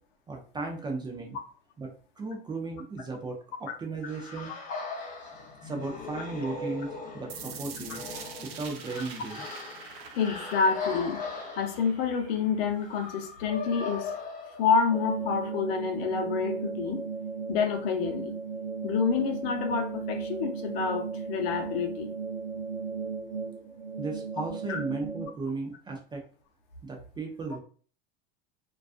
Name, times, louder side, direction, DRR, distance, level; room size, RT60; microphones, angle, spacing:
voice 1, 0.3-1.4 1.8-4.5 5.6-8.0 8.4-9.5 24.0-26.3 26.8-27.6, right 3 dB, 15° right, 1 dB, 0.4 m, -36 dB
sound 1, 4.0-15.1, left 4 dB, 25° left, 0.7 m, -39 dB
sound 2, 7.3-13.3, right 8 dB, 90° right, 0.5 m, -46 dB
voice 2, 10.2-11.2 11.6-14.1 14.6-17.0 17.5-18.3 18.8-22.1 24.7-24.8, left 6 dB, 70° left, 4 dB, 0.7 m, -28 dB
sound 3, 14.9-25.3, right 5 dB, 50° right, 0.9 m, -35 dB
2.4 x 2.3 x 2.4 m, 0.41 s
supercardioid pair, 120°, 30 cm